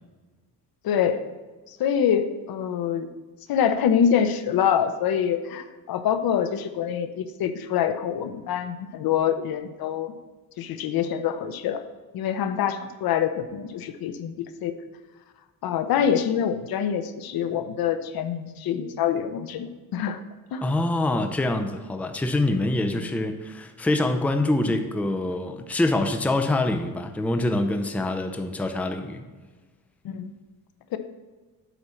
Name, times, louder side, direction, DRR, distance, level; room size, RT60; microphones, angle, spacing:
voice 1, 0.8-1.2 1.7-3.1 3.5-10.1 10.6-11.8 12.1-14.7 15.6-20.2 20.5-20.6 22.9-23.1 24.7-24.8 30.0-30.3 30.9-31.0, left 8 dB, 75° left, 10 dB, 0.8 m, -25 dB
voice 2, 20.6-29.2, left 2 dB, 5° left, 6 dB, 0.5 m, -25 dB
8.1 x 4.3 x 6.3 m, 1.3 s
cardioid pair, 145°, 36 cm